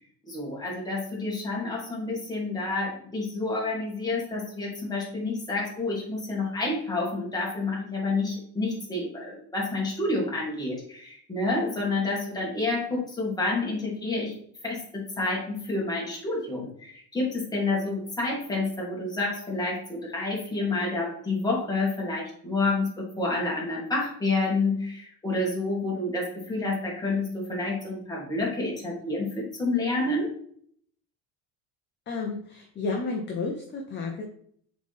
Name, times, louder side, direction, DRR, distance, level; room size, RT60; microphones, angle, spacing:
voice 1, 0.3-14.3 14.6-30.3, left 2 dB, 10° left, -4 dB, 2.1 m, -29 dB
voice 2, 32.1-34.2, left 3 dB, 30° left, 1 dB, 0.8 m, -31 dB
7.0 x 4.1 x 3.5 m, 0.63 s
cardioid pair, 145°, 36 cm